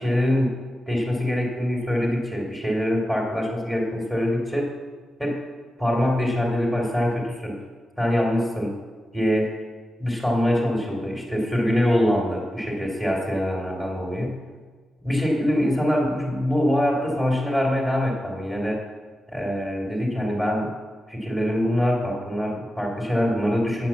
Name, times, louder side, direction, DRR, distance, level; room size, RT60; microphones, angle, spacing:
voice 1, 0.0-4.7 5.2-5.4 5.8-7.6 8.0-8.8 9.1-9.5 10.0-14.4 15.0-18.8 19.3-20.7 21.1-23.9, left 1 dB, 15° right, -2 dB, 2.6 m, -24 dB
9.2 x 5.9 x 7.1 m, 1.4 s
cardioid pair, 90°, 0 cm